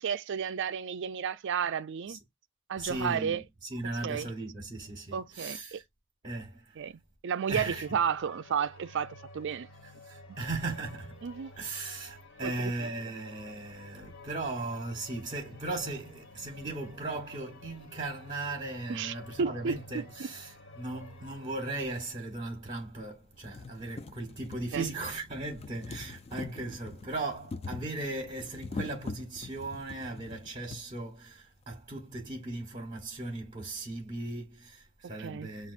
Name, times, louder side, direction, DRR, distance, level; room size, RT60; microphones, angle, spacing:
voice 1, 0.0-2.2 2.7-3.4 4.0-4.3 5.1-5.8 6.8-9.7 11.2-11.5 12.4-12.7 18.9-20.0 24.7-24.9 35.2-35.5, right 7 dB, 60° right, 0.4 m, -32 dB
voice 2, 2.8-5.8 6.2-6.9 7.5-7.9 9.8-11.3 11.6-35.7, right 2 dB, 30° right, 1.1 m, -37 dB
sound 1, 7.7-21.7, left 1 dB, 65° left, 1.4 m, -51 dB
sound 2, 21.3-21.4 22.3-22.4 22.9-23.0 23.3-30.8 31.8-31.9 32.1-32.2, left 3 dB, 30° left, 0.3 m, -43 dB
7.1 x 2.5 x 2.5 m
head